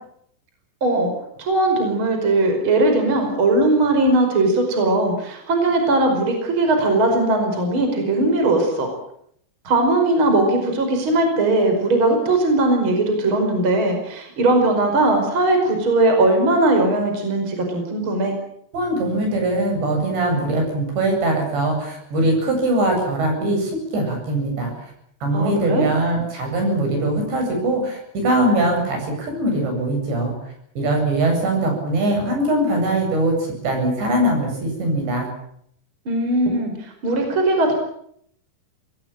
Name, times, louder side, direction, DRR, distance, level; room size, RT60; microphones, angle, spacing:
voice 1, 0.8-1.1 1.4-8.9 9.6-18.3 25.3-25.9 36.1-37.7, right 2 dB, 25° right, 4 dB, 5.4 m, -19 dB
voice 2, 18.7-24.7 25.2-30.4 30.8-35.3, right 1 dB, 60° right, 3 dB, 10.5 m, -21 dB
26.0 x 19.5 x 9.0 m, 0.70 s
omnidirectional pair, 5.7 m